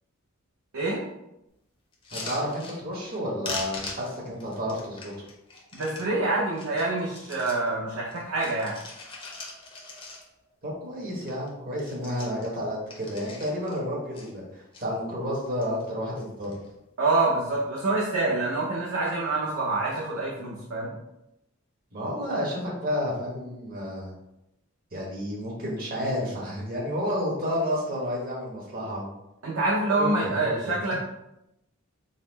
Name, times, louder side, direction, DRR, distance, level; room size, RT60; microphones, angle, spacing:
sound 1, 1.9-3.2 3.4-6.1 6.5-7.7 8.0-10.5 10.9-11.0 11.2-11.5 11.7-13.8 14.1-14.8 15.4-15.9 16.1-16.7 17.5-17.8, left 3 dB, 25° left, 0.7 m, -41 dB
voice 1, 2.1-5.1 10.6-16.6 21.9-24.1 24.9-29.1 30.0-30.9, equal, 45° right, -4 dB, 1.3 m, -31 dB
voice 2, 5.7-8.7 17.0-20.9 29.4-30.9, right 2 dB, 90° right, -5 dB, 0.7 m, -26 dB
4.1 x 2.0 x 3.9 m, 0.87 s
head